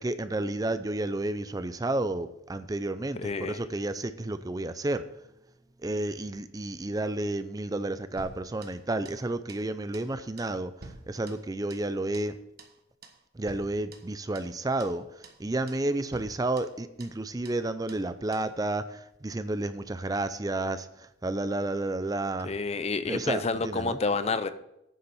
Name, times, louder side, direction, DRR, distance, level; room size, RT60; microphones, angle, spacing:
voice 1, 0.0-5.1 5.8-12.4 13.3-22.5 23.1-24.0, right 2 dB, 20° right, 12 dB, 0.4 m, -31 dB
voice 2, 3.2-3.6 22.4-24.5, left 3 dB, 35° left, 12 dB, 0.6 m, -29 dB
sound 1, 8.2-9.2 9.5-9.7 9.9-10.1 10.4-11.9 12.1-12.3 12.6-12.8 13.0-13.2 13.5-14.5 14.8-15.0 15.2-15.4 15.7-15.9 16.1-17.2 17.5-17.6 17.9-18.1 18.3-18.5, right 3 dB, 55° right, 1.3 m, -49 dB
9.4 x 7.0 x 6.9 m, 0.83 s
head